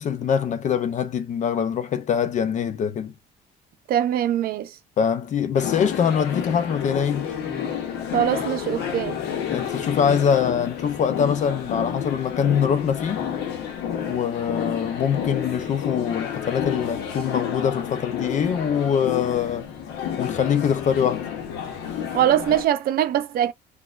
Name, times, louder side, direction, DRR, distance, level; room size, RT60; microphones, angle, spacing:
voice 1, 0.0-3.1 5.0-7.3 9.5-13.2 14.0-19.7 20.2-21.3, left 7 dB, 45° left, 0.5 m, -23 dB
voice 2, 3.9-4.7 8.1-9.2 22.1-23.5, right 11 dB, 60° right, 0.6 m, -22 dB
sound 1, 5.5-22.7, left 8 dB, 85° left, 0.9 m, -30 dB
4.2 x 2.3 x 2.4 m
cardioid pair, 110°, 17 cm